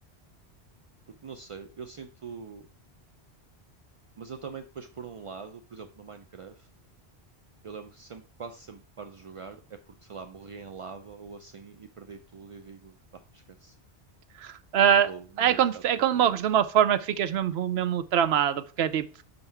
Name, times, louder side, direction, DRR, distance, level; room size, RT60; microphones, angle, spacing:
voice 1, 1.2-2.6 4.2-6.7 7.6-9.6 9.9-13.7 14.9-16.4, right 5 dB, 55° right, 7 dB, 0.3 m, -43 dB
voice 2, 14.4-15.1 15.4-19.1, right 9 dB, 75° right, 13 dB, 0.8 m, -23 dB
5.6 x 5.4 x 4.4 m, 0.36 s
omnidirectional pair, 1.1 m